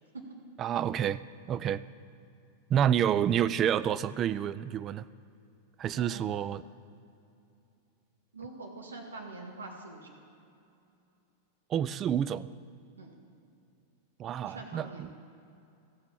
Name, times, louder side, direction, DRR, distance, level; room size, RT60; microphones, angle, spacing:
voice 1, 0.6-1.2 1.5-1.8 2.7-5.1 5.8-6.6 11.7-12.5 14.2-15.1, right 9 dB, 30° right, 16 dB, 0.3 m, -28 dB
voice 2, 5.9-6.6 8.3-10.1 13.0-13.1 14.4-15.1, right 3 dB, 75° right, 0 dB, 1.9 m, -44 dB
14.5 x 5.9 x 7.3 m, 2.6 s
figure-of-eight pair, 90°, 0 cm